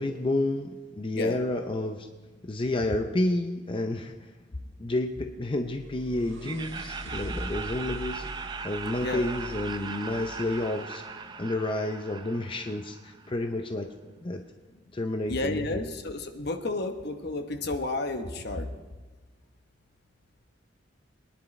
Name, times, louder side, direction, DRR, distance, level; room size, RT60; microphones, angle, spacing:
voice 1, 0.0-2.1 2.4-4.1 4.8-8.3 8.6-11.0 11.4-13.9 14.2-14.4 14.9-15.8, left 2 dB, 30° left, 5 dB, 0.6 m, -30 dB
sound 1, 5.4-11.5, equal, 90° right, 1.5 m, -42 dB
Laughter, 6.4-13.4, right 5 dB, 25° right, 0.5 m, -39 dB
voice 2, 15.3-18.7, left 2 dB, 60° left, 6 dB, 1.0 m, -31 dB
23.0 x 10.5 x 3.2 m, 1.3 s
head